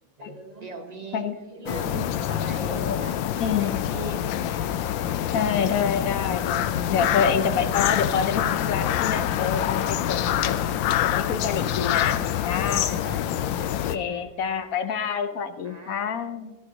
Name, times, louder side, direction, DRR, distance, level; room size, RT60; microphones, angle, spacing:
voice 1, 0.2-4.2 12.5-13.3 13.6-14.5 15.6-16.1, right 3 dB, 35° right, 5 dB, 0.7 m, -40 dB
sound 1, 1.7-14.0, left 11 dB, 80° left, 1.3 m, -26 dB
voice 2, 2.7-3.0 3.4-3.8 5.3-10.6 11.0-12.9 13.9-16.6, left 6 dB, 60° left, 10 dB, 1.0 m, -27 dB
16.5 x 14.0 x 2.9 m, 1.1 s
omnidirectional pair, 2.1 m